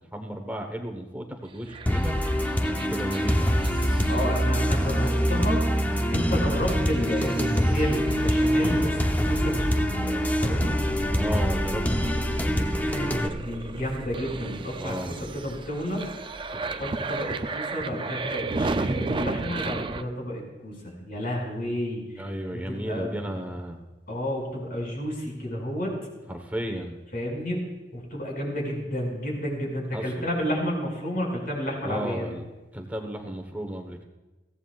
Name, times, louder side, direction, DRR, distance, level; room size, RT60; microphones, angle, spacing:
voice 1, 0.1-2.2 2.9-3.5 11.1-13.4 14.8-15.2 22.2-23.8 26.3-27.0 29.9-30.2 31.8-32.4 32.7-34.0, right 1 dB, 10° right, 4 dB, 1.2 m, -34 dB
sound 1, 1.7-20.0, right 2 dB, 30° right, 0.4 m, -32 dB
sound 2, 1.9-13.3, equal, 10° left, 0.8 m, -25 dB
voice 2, 4.1-10.8 13.4-16.1 16.5-23.4 24.1-26.0 27.1-27.6 27.9-32.3, equal, 55° left, -1 dB, 5.8 m, -31 dB
22.0 x 16.0 x 2.4 m, 1.1 s
head